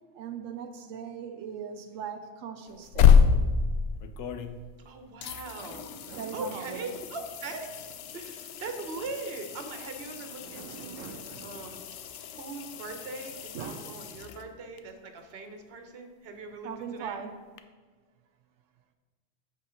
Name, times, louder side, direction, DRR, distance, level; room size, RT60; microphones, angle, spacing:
voice 1, 0.1-3.3 5.6-7.0 10.4-11.6 13.5-14.0 16.6-17.4, right 7 dB, 85° right, 6 dB, 0.9 m, -40 dB
sound 1, 2.7-4.8 5.2-14.8 17.6-17.7, left 6 dB, 75° left, 0.9 m, -28 dB
voice 2, 4.8-5.9 6.3-7.7 8.1-11.0 11.4-11.8 12.3-17.2, right 3 dB, 55° right, 6 dB, 1.1 m, -40 dB
7.7 x 5.5 x 5.1 m, 1.4 s
omnidirectional pair, 1.3 m